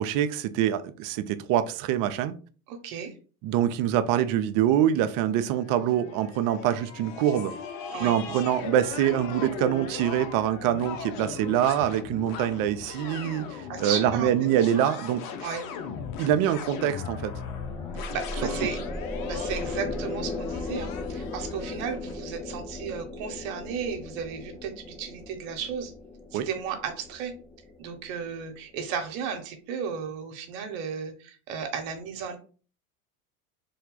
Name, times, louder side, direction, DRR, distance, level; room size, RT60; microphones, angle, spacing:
voice 1, 0.0-2.4 3.4-7.5 8.0-15.2 16.2-17.3 26.3-26.5, right 10 dB, 45° right, 0.5 m, -25 dB
voice 2, 2.7-3.1 7.9-8.1 13.7-14.3 14.7-14.9 15.4-15.6 17.9-18.8 19.2-25.9 26.3-27.3 27.8-32.4, right 7 dB, 65° right, 0.9 m, -34 dB
sound 1, 5.1-22.2, left 6 dB, 50° left, 0.7 m, -38 dB
sound 2, 17.3-28.6, left 2 dB, 10° left, 0.4 m, -37 dB
3.4 x 2.2 x 3.7 m
hypercardioid pair, 90°, 45 cm